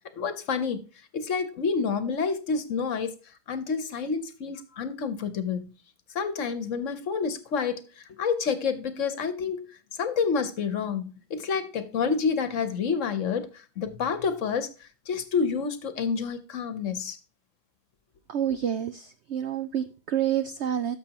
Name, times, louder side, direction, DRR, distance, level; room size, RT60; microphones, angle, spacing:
voice 1, 0.2-0.9 1.1-3.1 3.5-5.7 6.1-7.8 8.1-9.7 10.0-17.2, left 5 dB, 55° left, 1.1 m, -28 dB
voice 2, 18.3-21.0, right 10 dB, 70° right, 0.6 m, -28 dB
12.0 x 6.7 x 2.9 m
omnidirectional pair, 1.7 m